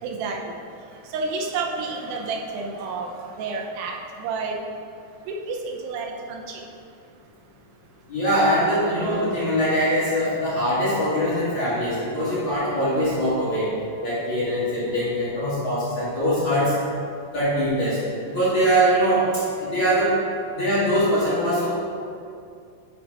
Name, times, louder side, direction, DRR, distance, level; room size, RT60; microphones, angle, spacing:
voice 1, 0.0-0.6 1.0-4.7 5.3-6.6, right 4 dB, 80° right, 0 dB, 2.5 m, -30 dB
voice 2, 8.1-13.7 14.0-16.7 17.3-18.0 18.3-20.1 20.5-21.7, equal, 45° left, -11 dB, 1.9 m, -22 dB
9.7 x 3.9 x 4.6 m, 2.4 s
omnidirectional pair, 4.2 m